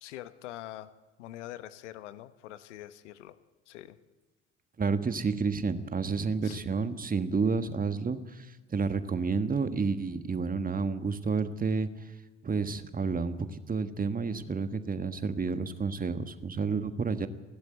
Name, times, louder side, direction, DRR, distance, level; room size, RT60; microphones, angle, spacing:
voice 1, 0.0-0.9 1.2-3.4 3.7-4.0 6.4-6.6, left 14 dB, 70° left, 14 dB, 1.0 m, -44 dB
voice 2, 4.8-12.1 12.4-17.3, right 4 dB, 25° right, 10 dB, 1.5 m, -30 dB
30.0 x 12.0 x 8.0 m, 1.2 s
figure-of-eight pair, 60°, 36 cm